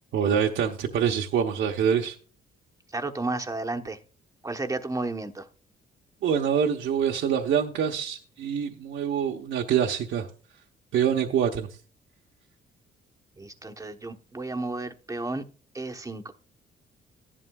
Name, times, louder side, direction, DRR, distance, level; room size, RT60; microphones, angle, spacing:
voice 1, 0.1-2.2 6.2-10.3 10.9-11.7, right 8 dB, 75° right, 1.0 m, -25 dB
voice 2, 2.9-4.0 4.4-5.5 13.4-15.5 15.7-16.3, right 2 dB, 15° right, 1.0 m, -32 dB
14.5 x 11.0 x 2.3 m
cardioid pair, 90°, 20 cm